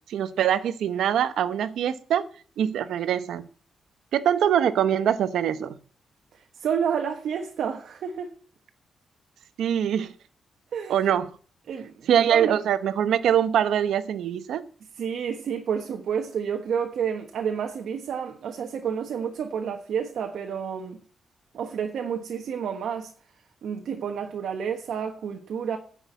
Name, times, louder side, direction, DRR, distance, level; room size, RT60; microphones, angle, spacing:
voice 1, 0.1-2.3 2.6-3.5 4.1-5.8 9.6-10.1 10.9-11.3 12.1-14.6, right 9 dB, 85° right, 0.8 m, -23 dB
voice 2, 6.3-8.3 10.7-11.0 11.7-12.6 15.0-21.0 21.5-23.1 23.6-25.8, right 7 dB, 70° right, 1.3 m, -30 dB
10.0 x 6.3 x 8.2 m
wide cardioid pair, 145°, 0 cm